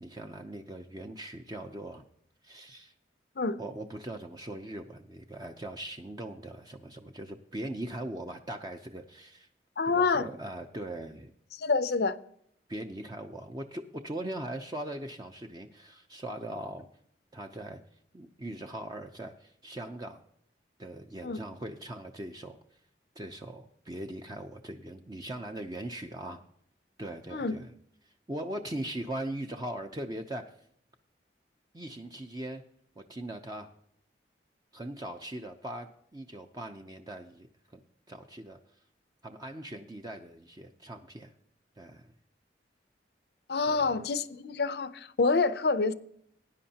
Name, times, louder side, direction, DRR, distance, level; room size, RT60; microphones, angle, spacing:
voice 1, 0.0-2.0 2.4-2.9 3.6-9.5 9.9-11.3 12.7-16.9 17.3-17.8 18.1-20.2 20.8-22.6 23.2-26.4 27.0-27.7 28.0-30.5 31.7-32.6 33.0-33.7 34.7-37.5 37.7-37.8 38.1-38.6 39.2-41.3 41.8-42.1 43.7-43.9, right 1 dB, 20° right, 0.6 m, -40 dB
voice 2, 9.8-10.3 11.5-12.1 21.2-21.4 27.3-27.6 43.5-45.9, left 4 dB, 65° left, 0.6 m, -27 dB
18.5 x 10.0 x 2.9 m
head